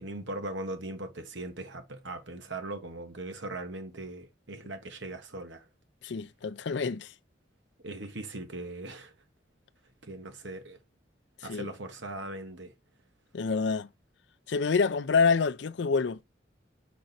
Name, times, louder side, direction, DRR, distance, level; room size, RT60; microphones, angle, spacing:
voice 1, 0.0-5.6 7.8-9.1 10.0-10.8 11.4-12.7, right 2 dB, 85° right, 1.5 m, -39 dB
voice 2, 6.0-7.1 11.5-11.7 13.3-13.9 14.5-16.2, left 5 dB, 75° left, 0.5 m, -27 dB
5.3 x 5.0 x 4.3 m
head